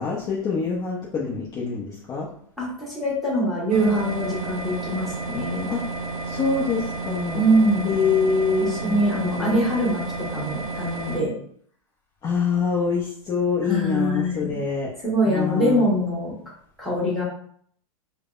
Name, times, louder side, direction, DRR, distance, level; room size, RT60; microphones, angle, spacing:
voice 1, 0.0-2.3 5.7-5.8 6.3-7.4 7.8-9.6 12.2-14.9 15.3-15.8, left 5 dB, 25° left, -5 dB, 0.6 m, -25 dB
voice 2, 2.6-5.7 7.3-7.9 8.6-11.3 13.6-14.6 15.0-16.3 16.8-17.2, right 1 dB, ahead, -6 dB, 1.3 m, -23 dB
sound 1, 3.7-11.2, right 3 dB, 85° right, 0.6 m, -31 dB
3.3 x 2.0 x 2.4 m, 0.62 s
hypercardioid pair, 110°, 18 cm